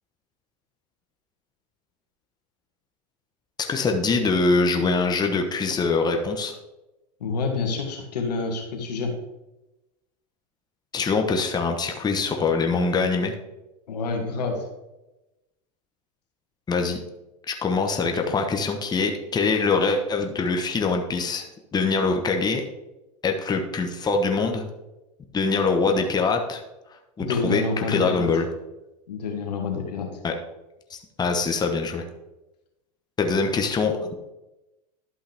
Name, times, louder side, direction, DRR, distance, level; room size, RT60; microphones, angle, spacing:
voice 1, 3.7-6.5 10.9-13.3 16.7-17.0 17.5-21.4 21.7-22.6 23.2-24.7 25.3-26.6 27.2-28.5 30.2-30.3 30.9-32.0 33.2-34.1, left 4 dB, 20° left, 3 dB, 1.1 m, -23 dB
voice 2, 7.2-9.1 13.9-14.6 27.2-28.3 29.1-30.1, left 3 dB, 90° left, 2 dB, 1.8 m, -28 dB
11.5 x 5.5 x 3.5 m, 0.98 s
hypercardioid pair, 105°, 20 cm